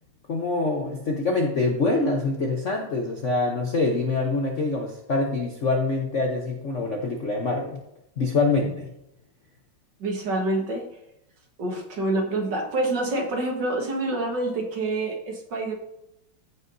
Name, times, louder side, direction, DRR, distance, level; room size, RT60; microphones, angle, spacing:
voice 1, 0.3-7.8 8.2-8.9, left 3 dB, 55° left, 1 dB, 0.8 m, -25 dB
voice 2, 10.0-10.9 11.6-15.8, right 2 dB, 55° right, 1 dB, 1.9 m, -27 dB
15.0 x 5.6 x 2.7 m, 0.83 s
omnidirectional pair, 2.4 m